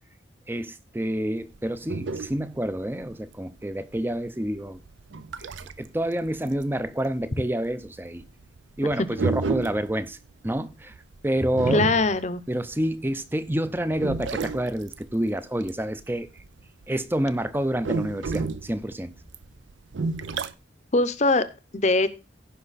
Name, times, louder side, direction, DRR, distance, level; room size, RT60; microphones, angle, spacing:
voice 1, 0.5-4.8 5.4-8.2 8.8-10.2 10.4-10.9 11.2-11.8 12.5-16.3 16.9-19.1, right 1 dB, 10° right, 0.5 m, -28 dB
sound 1, 1.4-5.9 6.2-13.1 13.5-17.0 17.3-20.5, right 4 dB, 75° right, 0.6 m, -31 dB
voice 2, 11.7-12.4 20.9-22.1, left 2 dB, 35° left, 0.7 m, -22 dB
15.0 x 5.5 x 4.1 m
head